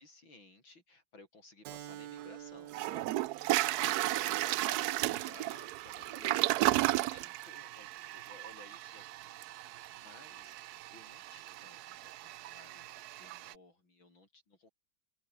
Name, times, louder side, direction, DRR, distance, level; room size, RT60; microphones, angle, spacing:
voice 1, 0.0-14.7, left 3 dB, 70° left, 7.0 m, -58 dB
Keyboard (musical), 1.6-6.8, right 13 dB, 65° right, 1.3 m, -51 dB
Toilet flush, 2.2-2.3 2.7-13.5, right 16 dB, 90° right, 0.8 m, -34 dB
omnidirectional pair, 2.2 m